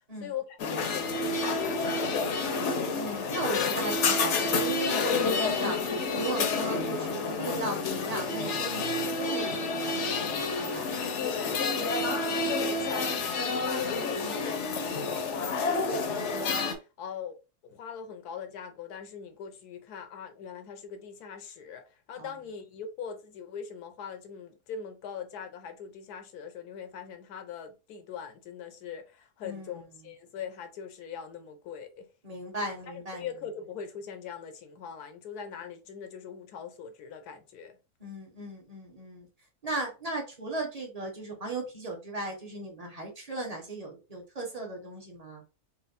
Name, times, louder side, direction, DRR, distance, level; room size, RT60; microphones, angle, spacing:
voice 1, 0.2-2.4 11.2-11.6 11.9-16.7 17.0-17.4 17.6-32.1 32.6-37.8, left 7 dB, 80° left, 1.2 m, -41 dB
sound 1, 0.6-16.7, left 3 dB, 55° left, 0.9 m, -29 dB
voice 2, 2.7-5.8 6.1-10.9 14.2-14.4 22.2-22.3 29.4-29.8 32.2-33.3 38.0-39.3 39.6-45.4, right 2 dB, 25° right, 1.1 m, -37 dB
4.3 x 2.1 x 4.1 m
omnidirectional pair, 1.6 m